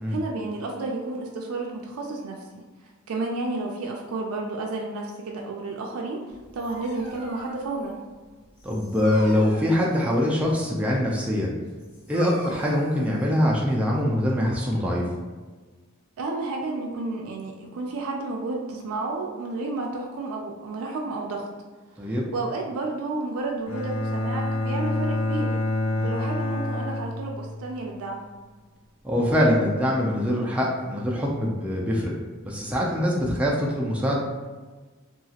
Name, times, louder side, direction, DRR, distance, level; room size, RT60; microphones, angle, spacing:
voice 1, 0.1-2.6 3.1-8.0 16.2-21.5 22.0-25.6 26.0-28.2, right 3 dB, 85° right, 0 dB, 0.4 m, -31 dB
Dog, 6.3-14.1, equal, 60° left, 1.3 m, -44 dB
voice 2, 8.6-11.5 12.1-15.0 22.0-22.2 26.0-26.1 29.0-32.1 32.4-34.2, equal, 5° right, -4 dB, 0.3 m, -23 dB
Bowed string instrument, 23.7-27.8, left 2 dB, 80° left, 0.6 m, -27 dB
2.8 x 2.4 x 2.7 m, 1.3 s
head